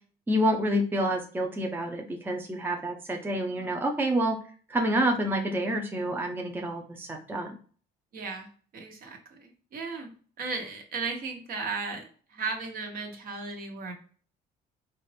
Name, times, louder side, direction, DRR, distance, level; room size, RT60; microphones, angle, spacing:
voice 1, 0.3-4.4 4.7-7.6, right 1 dB, 10° right, 2 dB, 0.6 m, -28 dB
voice 2, 8.1-8.5 8.7-10.1 10.4-13.9, right 4 dB, 60° right, 3 dB, 1.2 m, -35 dB
4.2 x 2.5 x 3.3 m, 0.42 s
cardioid pair, 110°, 17 cm